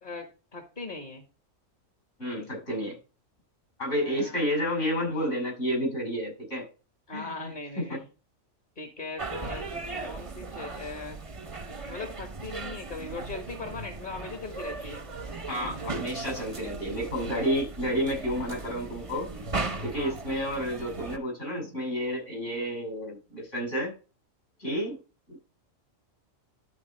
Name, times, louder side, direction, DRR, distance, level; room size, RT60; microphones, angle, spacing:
voice 1, 0.5-1.2 3.9-4.4 7.1-8.0 8.8-11.2 11.9-15.0 20.0-20.2, left 3 dB, 35° left, 5 dB, 1.7 m, -39 dB
voice 2, 2.2-3.0 3.8-6.6 7.1-7.5 7.8-7.9 15.5-19.3 19.8-23.9 24.6-25.0 25.3-25.4, equal, 60° left, 0 dB, 6.8 m, -30 dB
sound 1, 9.2-21.2, right 3 dB, 30° right, 0.9 m, -37 dB
12.0 x 4.5 x 4.5 m, 0.32 s
omnidirectional pair, 1.4 m